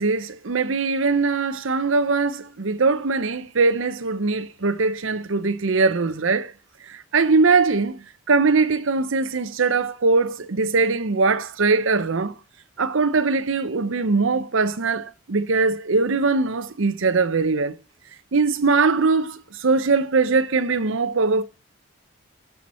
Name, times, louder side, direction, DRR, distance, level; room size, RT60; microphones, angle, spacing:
voice 1, 0.0-6.5 6.8-12.3 12.8-17.7 18.3-21.4, right 4 dB, 75° right, 0.7 m, -21 dB
16.5 x 5.9 x 4.3 m
head